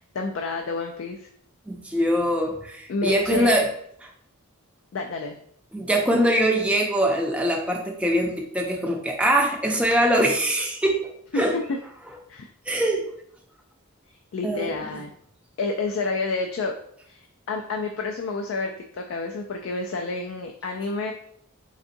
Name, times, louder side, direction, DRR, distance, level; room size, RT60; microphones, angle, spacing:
voice 1, 0.1-1.3 2.9-3.7 4.9-5.4 11.3-11.4 12.3-12.5 14.3-15.1 15.6-16.7 17.1-21.1, left 3 dB, 60° left, 3 dB, 0.3 m, -29 dB
voice 2, 1.7-3.7 5.7-11.5 12.7-13.1 14.4-14.7, right 1 dB, 5° right, 0 dB, 0.4 m, -23 dB
3.9 x 3.5 x 2.6 m, 0.68 s
head